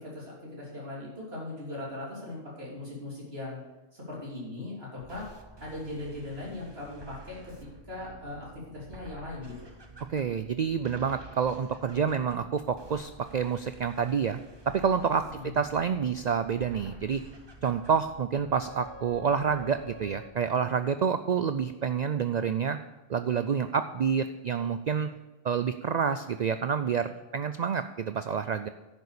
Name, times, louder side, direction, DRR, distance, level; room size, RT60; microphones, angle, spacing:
voice 1, 0.0-3.6 3.9-5.3 5.6-9.7 15.3-15.6, left 2 dB, 55° right, -5 dB, 3.6 m, -39 dB
sound 1, 5.0-20.3, right 2 dB, 25° right, 0.9 m, -49 dB
voice 2, 10.1-14.4 14.7-17.2 17.6-22.8 23.1-25.1 25.4-28.7, right 6 dB, 75° right, 10 dB, 0.4 m, -28 dB
10.5 x 6.9 x 6.6 m, 1.1 s
omnidirectional pair, 1.3 m